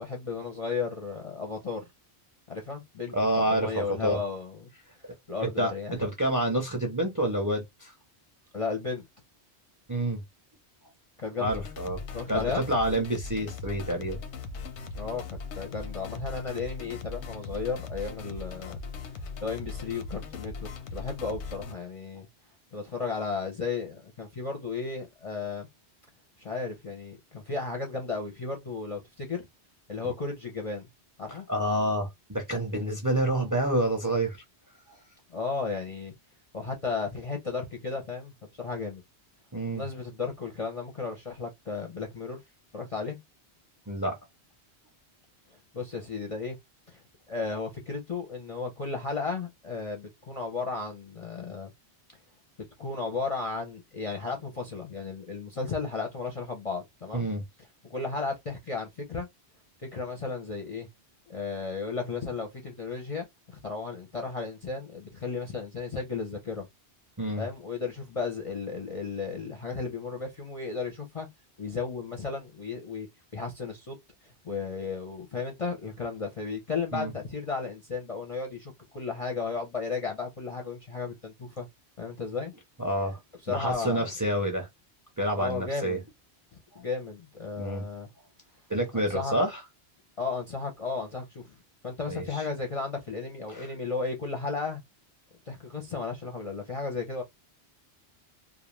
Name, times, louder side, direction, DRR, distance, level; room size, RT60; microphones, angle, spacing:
voice 1, 0.0-1.8 2.5-4.7 5.3-5.9 8.5-9.0 11.2-11.6 12.1-12.6 14.9-18.8 19.4-20.5 20.9-22.3 22.7-25.7 26.4-29.5 29.9-30.9 31.2-31.5 35.3-36.1 36.5-39.0 39.7-42.4 42.7-43.2 45.7-46.6 46.9-47.0 47.3-51.7 52.8-57.3 57.9-59.3 59.9-60.9 61.3-66.7 67.4-71.3 71.6-73.1 73.3-74.0 74.2-81.7 82.0-82.5 83.4-84.1 85.3-86.0 86.8-88.1 88.9-89.3 90.2-91.6 91.8-94.8 95.5-97.2, left 4 dB, 40° left, 0.5 m, -34 dB
voice 2, 3.1-4.2 5.0-5.1 5.6-5.7 6.0-7.9 9.9-10.2 11.4-12.0 12.3-14.2 31.3-34.4 39.5-39.8 43.9-44.2 57.1-57.4 67.2-67.4 76.9-77.1 82.8-83.2 83.5-84.7 85.2-86.0 87.6-87.8 88.7-89.6 92.1-92.4 93.5-93.7, right 1 dB, 25° right, 0.5 m, -28 dB
Arcade War, 11.4-21.7, left 4 dB, 90° left, 0.9 m, -39 dB
2.4 x 2.0 x 3.0 m
omnidirectional pair, 1.1 m